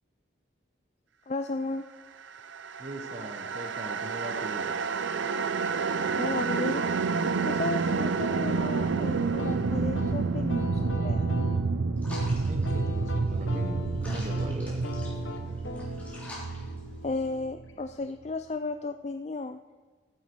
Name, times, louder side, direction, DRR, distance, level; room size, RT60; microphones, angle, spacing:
voice 1, 1.3-1.8 6.2-6.8 7.4-11.3 17.0-19.6, left 3 dB, 35° left, 8 dB, 0.3 m, -34 dB
sound 1, 2.5-17.7, right 4 dB, 75° right, 0.6 m, -29 dB
voice 2, 2.8-4.8 12.5-14.8, right 1 dB, 35° right, 4 dB, 1.0 m, -40 dB
sound 2, 9.4-18.0, left 2 dB, 80° left, 1.3 m, -42 dB
sound 3, 12.0-17.4, left 1 dB, 10° left, 3.4 m, -47 dB
15.0 x 9.5 x 4.6 m, 1.4 s
head